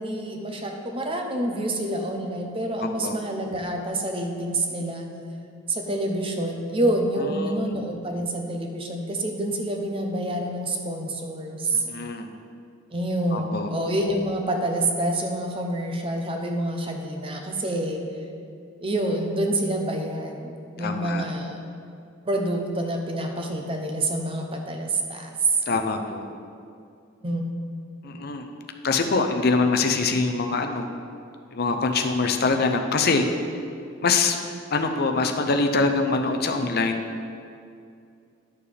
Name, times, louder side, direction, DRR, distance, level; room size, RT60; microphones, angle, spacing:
voice 1, 0.0-5.1 5.7-11.8 12.9-18.0 18.8-21.6 22.2-25.3 27.2-27.4, right 1 dB, 25° right, 2 dB, 0.8 m, -27 dB
voice 2, 7.2-7.6 11.7-12.3 13.3-13.7 20.8-21.3 25.7-26.3 28.0-28.5 28.8-30.9 31.5-33.3 34.0-34.4 34.7-37.0, left 3 dB, 50° left, 5 dB, 0.6 m, -24 dB
10.5 x 6.9 x 3.4 m, 2.4 s
head